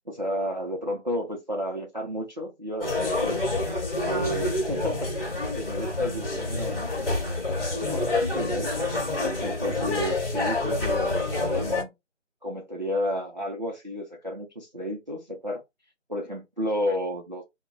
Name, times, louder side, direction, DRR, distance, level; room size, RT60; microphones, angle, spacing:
voice 1, 0.1-3.4 4.0-5.1 5.6-7.1 7.5-8.8 9.4-11.9 12.4-15.6 16.1-17.4, equal, 40° right, 0.4 m, -32 dB
sound 1, 2.8-11.8, left 2 dB, 50° left, 1.1 m, -27 dB
2.2 x 2.0 x 3.6 m
figure-of-eight pair, 160°, 36 cm